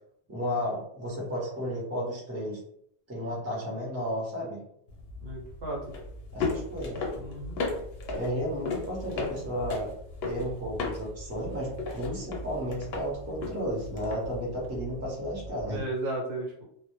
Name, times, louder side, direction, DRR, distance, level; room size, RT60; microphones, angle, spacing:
voice 1, 0.3-2.6 3.1-4.6 6.3-7.0 8.1-9.9 10.2-15.8, equal, 15° right, -4 dB, 0.6 m, -33 dB
sound 1, 4.9-15.8, left 3 dB, 70° left, 0.8 m, -36 dB
voice 2, 5.2-5.9 7.2-7.6 15.7-16.6, right 2 dB, 65° right, -2 dB, 0.9 m, -34 dB
2.1 x 2.0 x 2.9 m, 0.71 s
omnidirectional pair, 1.2 m